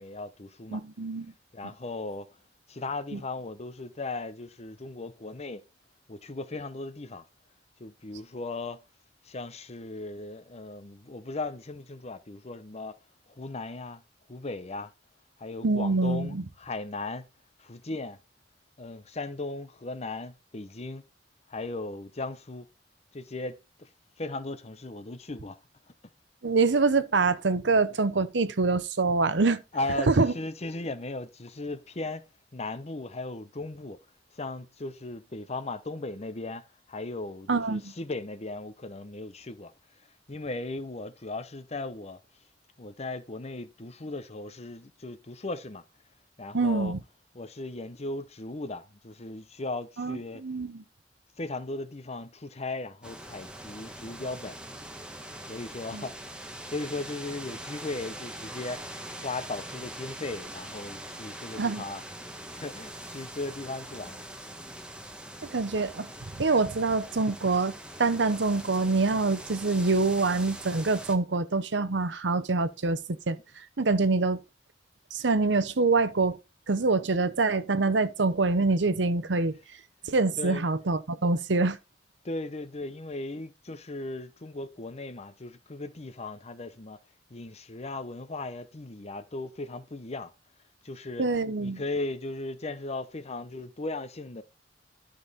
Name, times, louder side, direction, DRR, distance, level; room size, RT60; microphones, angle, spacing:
voice 1, 0.0-0.8 1.5-2.3 2.7-5.6 6.1-7.2 7.8-8.8 9.2-13.0 13.3-14.0 14.3-14.9 15.4-17.3 17.6-18.2 18.8-21.0 21.5-22.7 23.1-23.9 24.2-25.6 29.7-32.2 32.5-34.0 34.3-39.7 40.3-42.2 42.8-45.8 46.4-46.9 47.3-50.4 51.4-54.6 55.5-56.1 56.7-58.8 59.2-64.2 80.4-80.7 82.2-87.0 87.3-90.3 90.8-91.2 91.6-94.4, left 2 dB, 35° left, 0.8 m, -37 dB
voice 2, 0.7-1.3 3.1-3.2 15.6-16.4 26.4-29.6 30.1-30.3 37.5-37.9 46.5-47.0 50.0-50.8 55.9-56.0 61.6-61.8 65.5-66.1 66.4-67.7 68.0-73.0 73.3-73.4 73.8-74.4 75.1-76.4 76.7-79.6 80.1-81.8 91.2-91.8, right 3 dB, 75° right, 0.8 m, -25 dB
sound 1, 53.0-71.2, right 1 dB, 5° right, 1.2 m, -42 dB
11.5 x 5.3 x 4.2 m
head